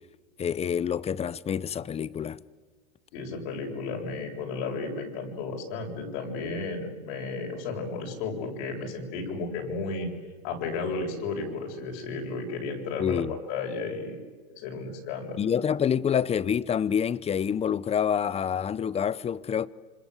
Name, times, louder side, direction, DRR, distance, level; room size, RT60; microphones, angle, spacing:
voice 1, 0.4-2.4 13.0-13.4 15.4-19.7, left 8 dB, 20° left, 0.7 m, -27 dB
voice 2, 3.1-10.1 10.4-14.2 14.5-15.4, left 3 dB, 60° left, 7.6 m, -33 dB
27.5 x 26.0 x 8.3 m
supercardioid pair, 125°, 33 cm